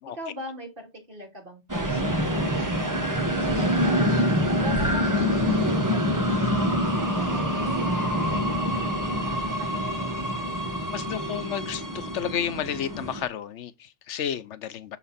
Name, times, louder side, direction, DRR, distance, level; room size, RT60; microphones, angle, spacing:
voice 1, 0.1-4.2 4.6-10.0, equal, 50° right, 3.3 m, -42 dB
sound 1, 1.7-13.2, equal, 15° right, 1.2 m, -25 dB
voice 2, 10.9-15.0, left 9 dB, 90° left, 1.0 m, -32 dB
6.6 x 5.8 x 4.2 m
omnidirectional pair, 1.2 m